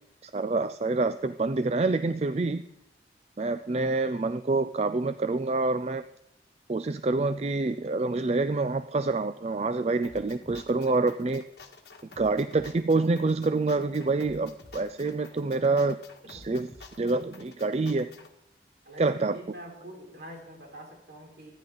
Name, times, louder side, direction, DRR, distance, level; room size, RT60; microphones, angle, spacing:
voice 1, 0.2-2.7 3.4-6.0 6.7-11.4 12.2-16.0 16.3-16.7 17.0-18.1 19.0-19.4, right 3 dB, 35° right, 12 dB, 0.4 m, -27 dB
sound 1, 10.0-18.3, left 3 dB, 65° left, 1.7 m, -50 dB
voice 2, 18.8-21.5, right 1 dB, 60° right, 0 dB, 4.6 m, -45 dB
25.5 x 10.5 x 3.9 m, 0.85 s
head